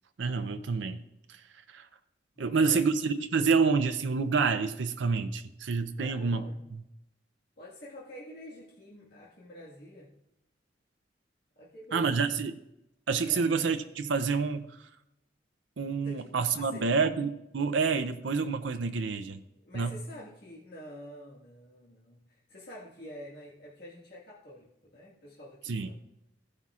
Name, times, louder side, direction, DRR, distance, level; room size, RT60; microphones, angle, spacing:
voice 1, 0.2-1.0 1.7-1.9 2.4-6.5 11.9-12.5 13.1-14.7 15.8-19.4 19.7-20.0 25.7-25.9, right 5 dB, 75° right, 8 dB, 0.5 m, -28 dB
voice 2, 2.3-2.8 6.0-6.6 7.6-10.1 11.6-12.3 13.2-13.5 16.0-17.2 19.5-26.0, equal, 55° left, -6 dB, 1.7 m, -48 dB
16.0 x 9.7 x 2.4 m, 0.88 s
head